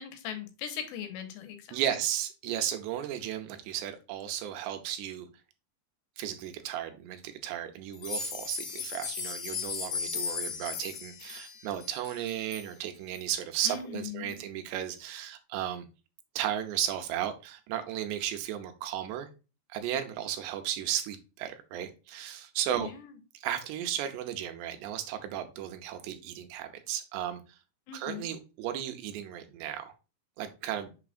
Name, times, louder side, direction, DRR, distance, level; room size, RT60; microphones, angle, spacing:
voice 1, 0.0-1.8 13.6-14.4 22.8-23.1 27.9-28.3, left 8 dB, 85° left, 8 dB, 3.2 m, -40 dB
voice 2, 1.7-5.3 6.2-15.9 16.4-19.3 19.7-22.9 23.3-27.4 27.9-29.9 30.4-30.9, right 11 dB, 80° right, 7 dB, 3.0 m, -34 dB
sound 1, 7.9-12.7 13.2-13.3 13.7-13.8 14.3-14.4, left 6 dB, 60° left, 3.2 m, -36 dB
6.8 x 5.9 x 2.4 m, 0.31 s
omnidirectional pair, 5.0 m